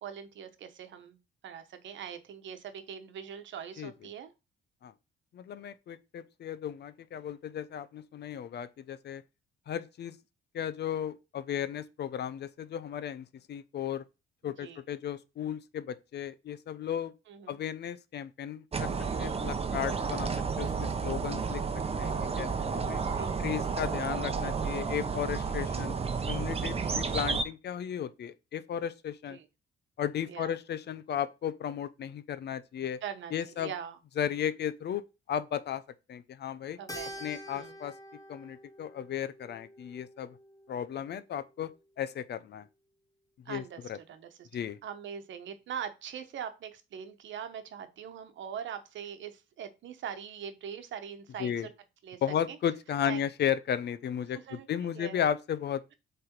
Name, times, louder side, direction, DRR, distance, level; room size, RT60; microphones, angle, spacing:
voice 1, 0.0-1.2 1.4-4.3 14.4-14.8 17.3-17.6 23.1-23.5 26.8-27.0 29.3-29.5 30.3-30.5 33.0-34.0 36.8-37.3 37.5-37.8 43.4-43.8 44.1-44.5 44.8-51.7 52.0-52.2 52.5-52.6 53.0-53.3 54.3-54.7 54.9-55.2, right 8 dB, 70° right, 1.1 m, -42 dB
voice 2, 5.3-9.2 9.7-10.2 10.5-14.0 14.4-17.1 17.5-18.9 19.2-20.3 20.6-21.6 22.0-23.0 23.4-26.0 26.3-29.4 30.0-33.0 33.3-33.7 34.2-35.8 36.1-36.8 37.2-38.0 38.3-40.4 40.7-41.7 42.0-42.7 43.5-43.6 43.9-44.0 44.5-44.8 51.4-51.7 52.2-55.8, left 9 dB, 60° left, 0.7 m, -34 dB
sound 1, 18.7-27.4, right 5 dB, 30° right, 0.9 m, -32 dB
Keyboard (musical), 36.9-41.5, equal, 15° left, 1.3 m, -47 dB
7.7 x 3.5 x 4.4 m
cardioid pair, 90°, 20 cm